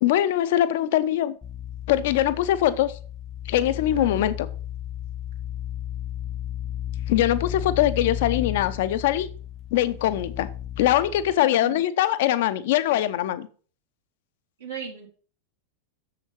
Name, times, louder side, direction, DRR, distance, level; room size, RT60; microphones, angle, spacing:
voice 1, 0.0-1.4 1.9-3.0 3.5-4.5 7.1-9.3 9.7-10.5 10.8-13.5, left 12 dB, 55° left, 0.8 m, -22 dB
sound 1, 1.4-11.3, left 11 dB, 20° left, 0.8 m, -34 dB
voice 2, 3.9-4.2 11.4-11.8 14.6-15.1, right 8 dB, 70° right, 2.0 m, -37 dB
7.2 x 6.7 x 5.7 m
figure-of-eight pair, 90°, 0 cm